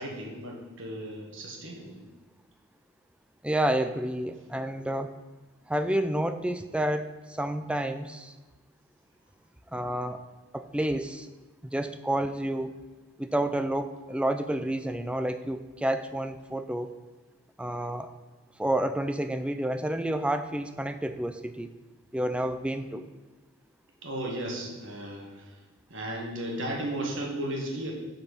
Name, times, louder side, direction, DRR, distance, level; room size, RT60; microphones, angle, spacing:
voice 1, 0.0-2.0 24.0-25.6 25.9-27.9, right 1 dB, 60° right, 0 dB, 1.6 m, -35 dB
voice 2, 3.4-5.1 5.7-8.3 9.7-10.2 10.5-11.3 11.6-12.7 13.2-16.9 17.6-18.1 18.6-21.7 22.1-23.1, right 1 dB, 5° right, 10 dB, 0.4 m, -29 dB
7.9 x 4.5 x 7.1 m, 1.3 s
head